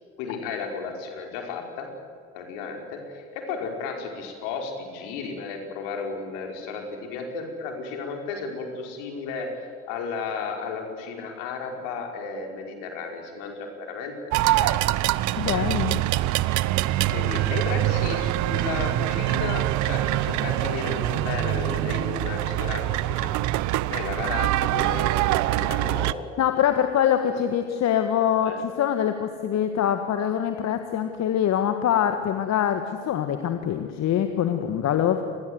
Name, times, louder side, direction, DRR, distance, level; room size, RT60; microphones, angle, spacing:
voice 1, 0.2-1.9 2.3-9.5 9.9-14.1 14.6-14.8 15.3-15.4 17.1-23.4 23.8-25.3 25.5-26.3 27.2-27.3 28.4-28.6, left 5 dB, 65° left, 3 dB, 4.9 m, -33 dB
sound 1, 14.3-26.1, right 16 dB, 50° right, 0.8 m, -24 dB
voice 2, 15.3-16.0 26.4-35.2, left 9 dB, 45° left, 7 dB, 1.8 m, -24 dB
26.5 x 20.5 x 8.0 m, 2.2 s
hypercardioid pair, 65°, 36 cm